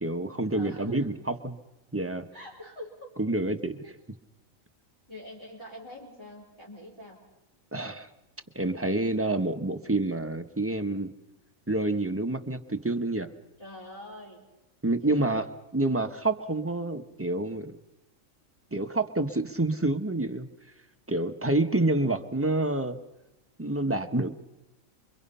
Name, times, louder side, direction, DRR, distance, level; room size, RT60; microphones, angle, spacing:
voice 1, 0.0-1.6 1.9-2.3 3.2-4.0 7.7-8.1 8.5-11.1 11.7-13.3 14.8-15.4 15.7-17.8 18.7-20.5 21.1-23.0 23.6-24.3, right 2 dB, 10° right, 6 dB, 1.2 m, -28 dB
voice 2, 0.5-1.0 2.3-3.1 5.1-7.2 13.6-14.4 15.0-15.5 21.6-21.8, left 1 dB, 20° left, -5 dB, 5.0 m, -44 dB
28.0 x 24.5 x 5.6 m, 0.99 s
omnidirectional pair, 1.4 m